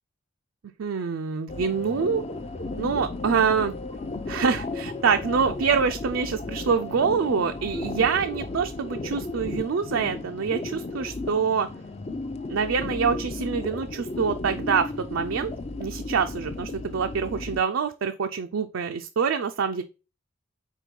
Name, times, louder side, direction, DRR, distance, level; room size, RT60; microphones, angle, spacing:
voice 1, 0.8-2.2 2.8-3.7 4.3-11.7 12.5-15.5 15.8-19.8, right 6 dB, 70° right, 6 dB, 0.4 m, -25 dB
sound 1, 1.5-17.6, left 2 dB, 30° left, 0.5 m, -34 dB
4.5 x 4.3 x 5.2 m, 0.33 s
head